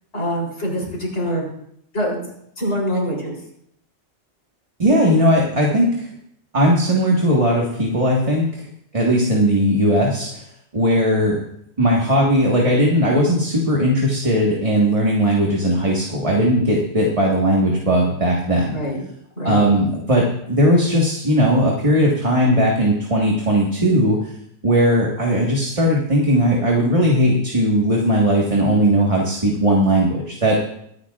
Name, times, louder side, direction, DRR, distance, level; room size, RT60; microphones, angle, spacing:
voice 1, 0.1-1.4 1.9-2.3 2.6-3.4 18.7-19.0 19.4-19.7, equal, 70° left, -2 dB, 4.0 m, -24 dB
voice 2, 4.8-6.1 6.5-8.6 8.9-10.4 10.7-11.4 11.8-18.8 19.4-24.2 24.6-30.6, equal, 30° right, -2 dB, 1.7 m, -18 dB
24.0 x 9.5 x 2.5 m, 0.72 s
omnidirectional pair, 1.2 m